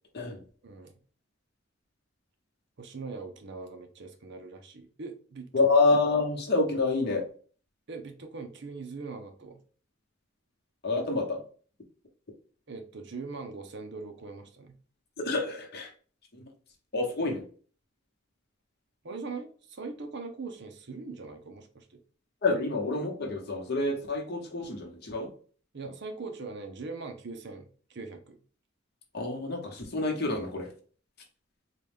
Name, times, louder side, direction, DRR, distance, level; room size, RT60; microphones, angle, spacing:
voice 1, 0.6-1.0 2.8-5.5 7.9-9.6 12.7-14.7 19.0-22.0 25.7-28.4, right 4 dB, 60° right, 6 dB, 0.6 m, -41 dB
voice 2, 5.5-7.2 10.8-11.4 15.2-15.9 16.3-16.4 16.9-17.4 22.4-25.3 29.1-30.7, left 3 dB, 55° left, 1 dB, 0.9 m, -27 dB
3.9 x 2.3 x 3.4 m, 0.43 s
head